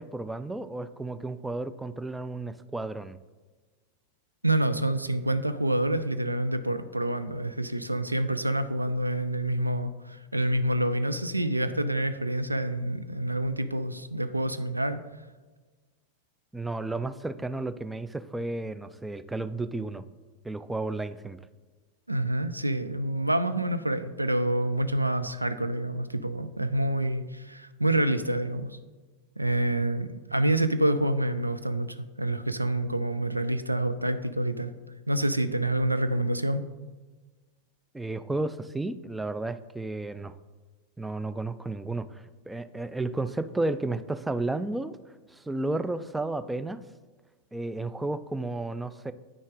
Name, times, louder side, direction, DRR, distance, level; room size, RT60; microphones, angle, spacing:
voice 1, 0.0-3.2 16.5-20.0 20.4-21.4 37.9-40.3 41.0-45.0 45.3-46.8 47.5-49.1, right 2 dB, 5° right, 14 dB, 0.3 m, -32 dB
voice 2, 4.4-15.0 22.1-28.8 29.4-34.7 35.1-36.6, right 1 dB, 85° right, 12 dB, 0.4 m, -27 dB
9.0 x 6.3 x 3.6 m, 1.3 s
figure-of-eight pair, 90°, 0 cm